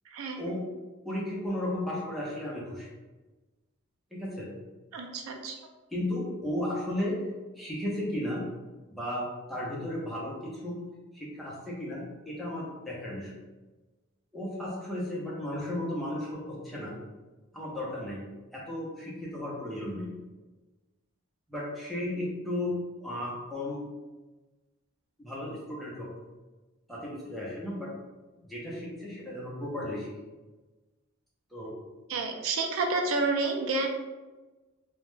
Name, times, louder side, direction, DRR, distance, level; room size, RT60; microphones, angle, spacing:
voice 1, 0.1-0.4 4.9-5.6 32.1-33.9, right 3 dB, 75° right, 2 dB, 0.4 m, -29 dB
voice 2, 1.0-2.9 4.1-4.5 5.9-7.2 7.5-8.4 8.9-10.8 11.1-13.3 14.3-17.0 17.5-18.2 18.5-20.1 21.5-22.7 23.0-23.8 25.2-26.1 26.9-27.9 28.5-30.1 31.5-31.7, left 1 dB, ahead, -6 dB, 0.6 m, -34 dB
2.2 x 2.1 x 3.1 m, 1.2 s
head